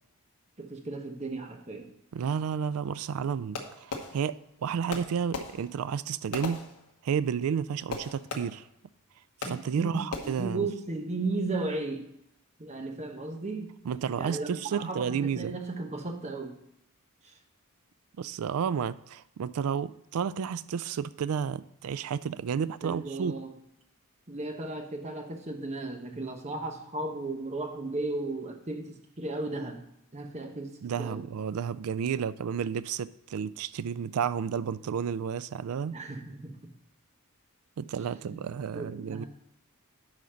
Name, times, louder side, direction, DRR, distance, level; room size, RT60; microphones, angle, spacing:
voice 1, 0.6-1.9 9.4-12.1 12.6-13.7 14.2-16.6 17.2-17.4 22.8-23.6 24.3-29.8 30.1-31.3 35.9-36.7 38.3-38.4 38.7-39.3, right 2 dB, 30° right, 0.9 m, -35 dB
voice 2, 2.1-6.7 7.0-8.6 9.5-10.7 13.8-15.6 18.2-23.3 30.8-36.0 37.8-39.2, right 7 dB, 70° right, 0.3 m, -31 dB
Fireworks, 3.5-4.6 4.9-7.3 7.9-8.8 9.4-9.8 10.1-10.6, left 4 dB, 80° left, 1.2 m, -39 dB
9.9 x 4.0 x 5.7 m
head